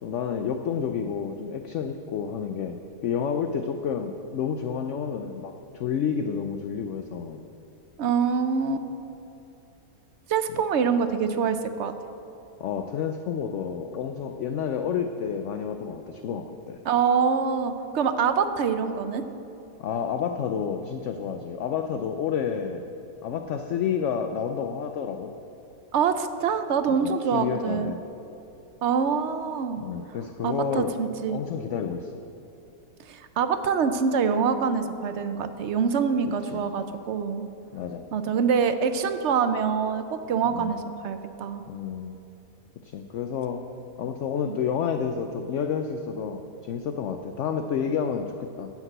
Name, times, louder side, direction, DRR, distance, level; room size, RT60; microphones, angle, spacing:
voice 1, 0.0-7.4 10.5-10.6 12.6-16.8 19.8-22.9 23.2-25.3 26.9-28.1 29.8-30.9 31.3-32.2 36.4-36.7 37.7-38.1 40.5-40.8 41.7-42.2 42.8-43.7 44.0-48.7, left 7 dB, 65° left, 7 dB, 0.8 m, -30 dB
voice 2, 8.0-8.9 10.3-11.9 16.8-19.2 25.9-27.9 28.8-29.8 30.4-31.4 33.1-37.4 38.1-41.6 44.5-44.6, right 6 dB, 60° right, 9 dB, 0.8 m, -25 dB
9.7 x 7.4 x 7.9 m, 2.8 s
omnidirectional pair, 1.6 m